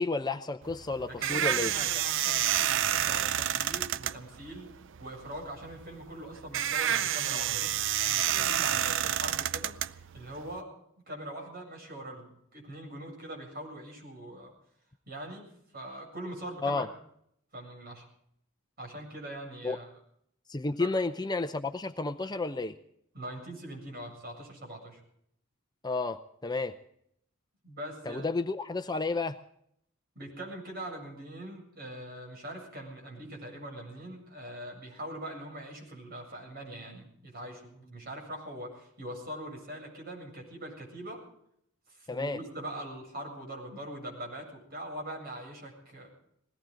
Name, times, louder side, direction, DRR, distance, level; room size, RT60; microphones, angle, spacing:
voice 1, 0.0-1.7 16.6-16.9 19.6-19.8 20.5-22.8 25.8-26.8 28.1-29.4 42.1-42.4, left 3 dB, 20° left, 9 dB, 0.6 m, -31 dB
sound 1, 0.6-10.6, right 11 dB, 65° right, 0.5 m, -29 dB
voice 2, 1.0-4.7 5.0-7.7 8.0-10.7 11.1-14.5 15.1-15.5 15.7-16.9 17.5-18.0 18.8-19.9 20.8-20.9 23.1-25.0 27.6-28.3 30.2-41.2 41.9-46.1, right 1 dB, 50° right, 1 dB, 7.6 m, -42 dB
21.0 x 17.5 x 3.8 m, 0.71 s
head